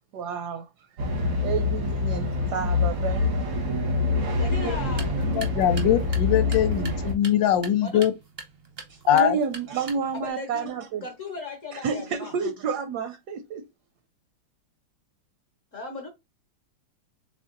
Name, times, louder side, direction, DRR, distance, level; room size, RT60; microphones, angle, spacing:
voice 1, 0.1-0.7 1.4-3.5 8.9-11.0 11.7-13.6, right 6 dB, 70° right, 1.0 m, -30 dB
sound 1, 1.0-7.1, left 3 dB, 90° right, 1.9 m, -25 dB
voice 2, 4.4-5.3 7.8-8.1 10.1-10.7 11.0-12.3 15.7-16.1, left 3 dB, 55° left, 1.0 m, -37 dB
sound 2, 4.8-10.3, right 4 dB, 55° right, 0.6 m, -43 dB
voice 3, 5.3-8.1 9.1-9.4, left 10 dB, 75° left, 1.3 m, -22 dB
4.3 x 3.4 x 2.5 m
omnidirectional pair, 2.2 m